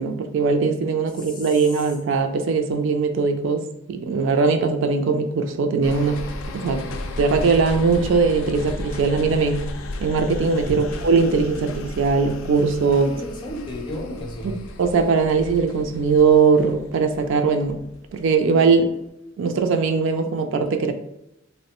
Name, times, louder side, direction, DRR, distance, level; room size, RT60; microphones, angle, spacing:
voice 1, 0.0-6.2 6.5-6.8 7.2-9.7 10.0-13.1 14.4-17.8 18.1-18.9 19.4-20.9, right 4 dB, 65° right, 6 dB, 0.3 m, -20 dB
sound 1, 5.8-18.4 18.8-18.9, left 1 dB, 85° left, 0.4 m, -34 dB
voice 2, 12.8-14.6, left 1 dB, 25° left, 1 dB, 0.5 m, -34 dB
3.0 x 2.1 x 2.9 m, 0.83 s
head